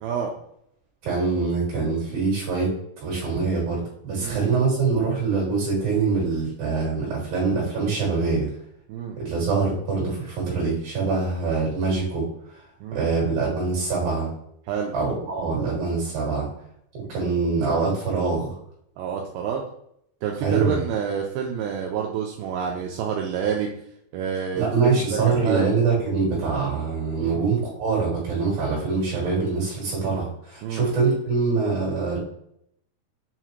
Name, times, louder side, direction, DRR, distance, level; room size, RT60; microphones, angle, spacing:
voice 1, 0.0-0.3 4.2-4.4 8.9-9.2 12.8-13.1 14.7-14.9 17.0-17.1 19.0-19.6 20.2-23.7 24.1-25.7 27.2-27.4 30.6-30.9, right 7 dB, 90° right, 1 dB, 2.1 m, -28 dB
voice 2, 1.0-2.7 3.0-8.5 9.2-12.3 12.9-14.3 14.9-16.5 16.9-18.5 20.4-20.8 24.5-32.2, right 4 dB, 65° right, -5 dB, 3.3 m, -24 dB
7.1 x 2.4 x 2.9 m, 0.73 s
omnidirectional pair, 4.8 m